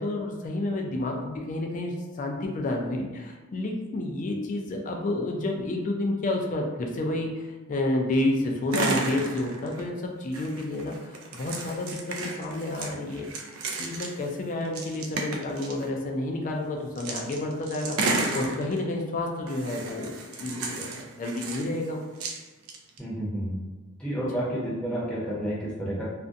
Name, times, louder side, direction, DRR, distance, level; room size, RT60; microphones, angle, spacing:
voice 1, 0.0-13.5 13.8-22.1 24.3-24.4, left 2 dB, 40° left, 1 dB, 0.3 m, -30 dB
sound 1, 8.7-9.9 10.3-14.3 14.6-15.9 17.0-18.8 19.5-21.8 22.2-23.0, right 3 dB, 85° right, 0.4 m, -32 dB
voice 2, 23.0-23.5 24.0-26.0, right 1 dB, 5° left, -7 dB, 0.7 m, -30 dB
2.4 x 2.1 x 2.5 m, 1.3 s
head